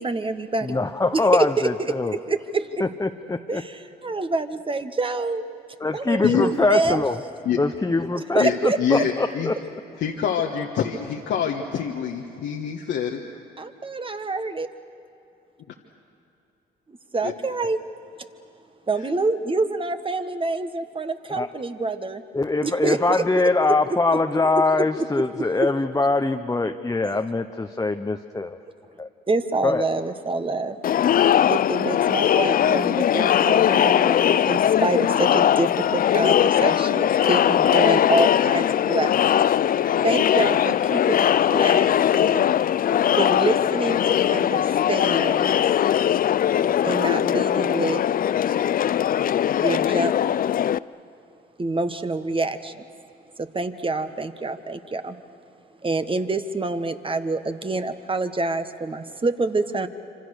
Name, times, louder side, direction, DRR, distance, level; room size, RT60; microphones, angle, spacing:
voice 1, 0.0-0.8 1.1-1.7 2.0-2.8 3.5-5.4 5.9-7.0 8.1-9.0 13.8-14.7 17.1-17.8 18.9-22.2 22.6-23.2 23.9-24.0 24.6-24.9 25.4-25.7 29.3-30.8 31.5-39.1 40.0-42.5 43.2-45.6 46.8-48.0 49.6-50.1 51.6-52.8 53.4-55.2 55.8-59.9, right 3 dB, 30° right, 9 dB, 1.5 m, -26 dB
voice 2, 0.6-2.1 2.8-3.6 5.8-7.2 7.6-9.6 21.3-21.5 22.3-28.6 29.0-29.1 29.6-29.8, left 3 dB, 20° left, 5 dB, 1.0 m, -23 dB
voice 3, 8.4-9.5 10.0-13.2 17.2-17.3, left 8 dB, 70° left, 1 dB, 1.5 m, -25 dB
Crowd, 30.8-50.8, left 10 dB, 50° left, 0.5 m, -20 dB
26.5 x 25.5 x 6.6 m, 2.8 s
supercardioid pair, 65°, 19 cm